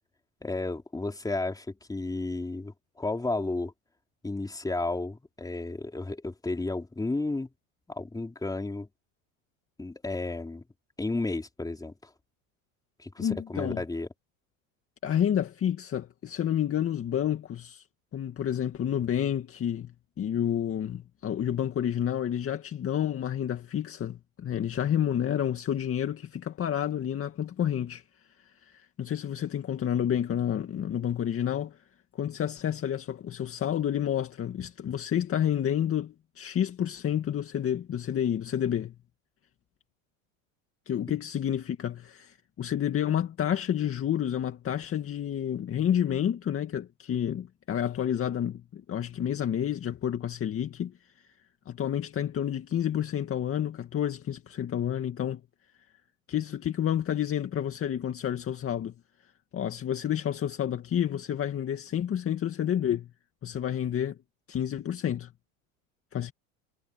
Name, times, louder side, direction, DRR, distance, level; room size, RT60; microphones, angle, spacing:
voice 1, 0.4-3.7 4.2-7.5 7.9-8.9 9.8-10.6 11.0-12.1 13.0-14.1, left 2 dB, 10° left, 4.0 m, -32 dB
voice 2, 13.2-13.8 15.0-17.8 18.1-28.0 28.6-31.8 32.1-38.9 40.9-50.9 51.7-55.4 56.3-58.9 59.5-63.1 63.4-64.2 64.5-65.3 66.1-66.3, left 10 dB, 30° left, 2.1 m, -29 dB
supercardioid pair, 115°, 42 cm